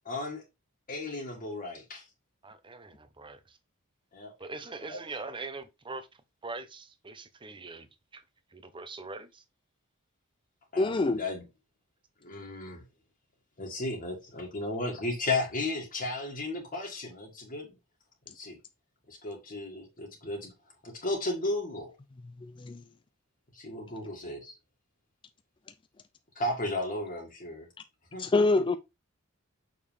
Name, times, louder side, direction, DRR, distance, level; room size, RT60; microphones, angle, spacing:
voice 1, 0.0-0.4 0.9-2.0 4.1-4.3 4.9-5.0 10.7-11.4 12.2-12.8 13.6-17.7 18.3-18.6 19.1-20.5 20.8-21.9 23.5-24.6 26.3-27.7 28.1-28.4, left 2 dB, 40° left, 1.8 m, -34 dB
voice 2, 2.4-3.6 4.4-8.2 8.5-9.4, right 3 dB, 25° right, 0.8 m, -42 dB
voice 3, 10.8-11.2 22.4-22.8 28.2-28.8, left 3 dB, 25° left, 0.4 m, -25 dB
6.5 x 5.4 x 3.3 m
head